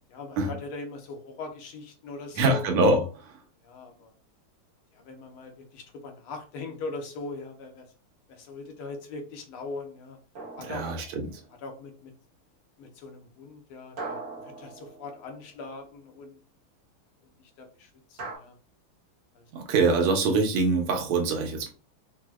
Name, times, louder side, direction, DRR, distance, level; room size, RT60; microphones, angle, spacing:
voice 1, 0.1-2.6 3.6-4.1 4.9-7.9 8.3-10.2 10.6-11.1 11.6-12.1 12.8-16.4 17.4-18.6 19.3-19.5, left 3 dB, 75° left, 1.5 m, -41 dB
voice 2, 2.4-3.4 10.7-11.4 19.5-21.7, right 3 dB, 85° right, 1.6 m, -24 dB
sound 1, 10.4-11.6 14.0-15.6 18.2-18.4, right 3 dB, 65° right, 0.8 m, -41 dB
4.6 x 2.0 x 2.3 m
omnidirectional pair, 2.4 m